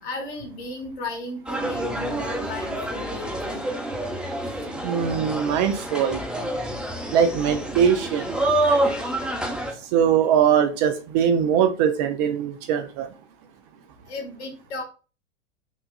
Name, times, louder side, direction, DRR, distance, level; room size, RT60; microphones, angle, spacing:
voice 1, 0.0-3.6 14.1-14.8, left 2 dB, 60° left, 2 dB, 1.5 m, -35 dB
sound 1, 1.5-9.7, right 1 dB, 5° right, 0.8 m, -27 dB
voice 2, 4.8-6.2 7.1-8.3 9.9-13.1, right 8 dB, 35° right, 8 dB, 0.4 m, -21 dB
6.0 x 2.4 x 2.3 m, 0.34 s
figure-of-eight pair, 100°, 36 cm